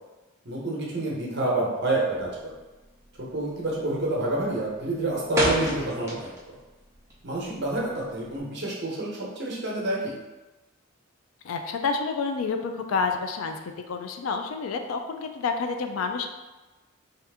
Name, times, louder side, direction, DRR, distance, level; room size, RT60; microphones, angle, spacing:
voice 1, 0.4-2.5 3.2-6.6 7.2-10.1, right 2 dB, 55° right, -4 dB, 0.8 m, -28 dB
sound 1, 2.2-2.5 2.8-3.2 3.5-3.9 4.3-6.6 6.9-8.4, right 1 dB, 15° right, 0.5 m, -30 dB
voice 2, 11.4-13.6 13.9-16.3, left 4 dB, 80° left, 6 dB, 0.3 m, -29 dB
2.8 x 2.4 x 3.4 m, 1.2 s
head